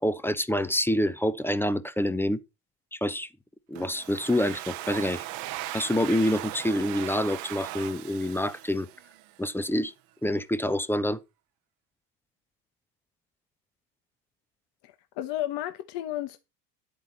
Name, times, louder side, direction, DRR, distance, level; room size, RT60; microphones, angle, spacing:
voice 1, 0.0-2.4 2.9-3.3 3.7-5.2 5.7-8.9 9.4-9.9 10.2-11.2, left 1 dB, 5° left, 0.7 m, -27 dB
Domestic sounds home sounds, 3.8-9.4, right 16 dB, 60° right, 1.0 m, -38 dB
voice 2, 14.8-16.4, left 13 dB, 55° left, 1.1 m, -33 dB
10.5 x 8.4 x 4.1 m
hypercardioid pair, 75°, 49 cm